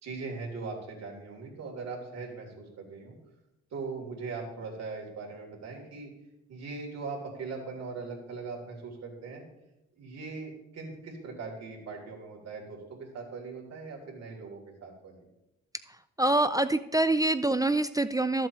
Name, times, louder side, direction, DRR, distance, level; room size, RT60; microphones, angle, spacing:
voice 1, 0.0-3.1 3.7-6.1 6.5-9.4 10.0-15.2, right 4 dB, 60° right, -1 dB, 3.4 m, -40 dB
voice 2, 16.2-18.5, right 2 dB, 10° right, 11 dB, 0.4 m, -25 dB
14.0 x 7.5 x 3.1 m, 0.89 s
cardioid pair, 90°, 30 cm